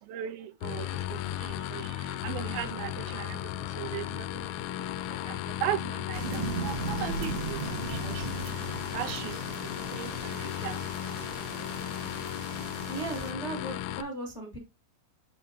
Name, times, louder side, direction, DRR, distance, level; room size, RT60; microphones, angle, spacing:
voice 1, 0.0-4.5 5.1-9.6 9.9-10.8 11.2-11.3, right 12 dB, 85° right, 2.8 m, -38 dB
sound 1, 0.6-14.0, left 12 dB, 85° left, 2.5 m, -35 dB
sound 2, 6.1-13.3, right 5 dB, 55° right, 1.9 m, -38 dB
voice 2, 12.9-14.6, right 2 dB, 25° left, 1.5 m, -37 dB
10.0 x 4.6 x 2.8 m
omnidirectional pair, 4.3 m